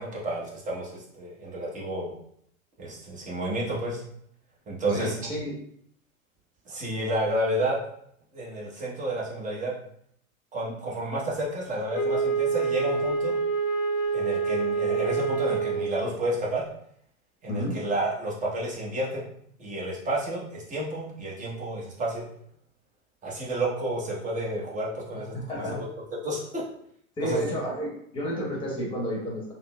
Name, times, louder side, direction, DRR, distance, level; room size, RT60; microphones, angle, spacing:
voice 1, 0.0-2.1 2.8-4.0 4.7-5.2 6.7-7.8 8.3-9.7 10.5-13.4 14.1-16.6 17.4-19.3 19.6-22.2 23.2-25.8 26.2-26.6 27.2-27.4, right 1 dB, 20° right, -4 dB, 0.9 m, -30 dB
voice 2, 4.9-5.5 17.5-17.8 25.1-25.9 27.2-29.5, equal, 10° left, -3 dB, 1.0 m, -31 dB
Wind instrument woodwind instrument, 11.9-16.1, right 4 dB, 70° left, 0.6 m, -27 dB
3.8 x 2.0 x 2.2 m, 0.68 s
hypercardioid pair, 115°, 43 cm